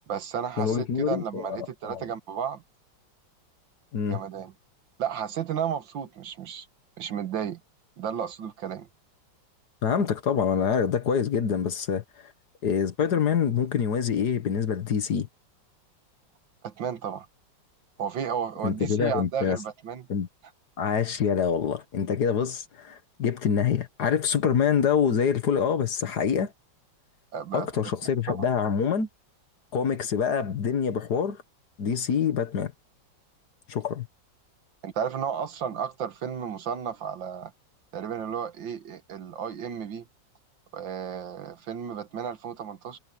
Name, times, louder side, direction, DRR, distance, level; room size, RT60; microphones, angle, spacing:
voice 1, 0.1-2.6 4.1-4.5 5.0-6.7 7.0-7.6 8.0-8.9 16.6-17.3 18.0-20.1 27.3-27.7 28.3-28.5 34.8-37.5 37.9-40.1 40.7-43.0, right 8 dB, 80° right, 2.1 m, -33 dB
voice 2, 0.6-2.0 3.9-4.2 9.8-12.0 12.6-15.3 18.6-19.6 20.1-20.3 20.8-26.5 27.5-29.1 29.7-31.4 31.8-32.7 33.7-34.1, left 7 dB, 60° left, 1.8 m, -26 dB
omnidirectional pair, 2.0 m